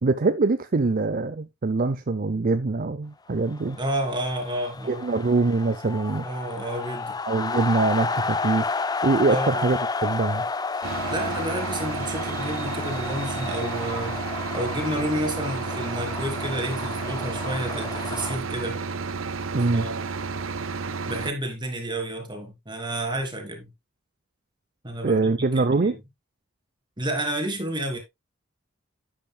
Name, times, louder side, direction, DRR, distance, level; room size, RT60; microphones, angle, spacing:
voice 1, 0.0-3.8 4.9-6.3 7.3-8.7 9.0-10.5 19.5-19.8 25.0-26.0, right 3 dB, 45° right, 0.6 m, -23 dB
Crowd Cheering - Strong Cheering and Soft Rhythmic Cheering, 3.6-18.4, left 4 dB, 20° left, 0.4 m, -32 dB
voice 2, 3.8-5.0 6.2-7.1 9.3-9.7 11.1-14.2 14.5-18.8 19.7-20.1 21.1-23.7 24.8-26.0 27.0-28.0, right 1 dB, 25° right, 2.8 m, -30 dB
sound 1, 10.8-21.3, right 4 dB, 75° right, 0.8 m, -31 dB
10.5 x 8.9 x 2.3 m
head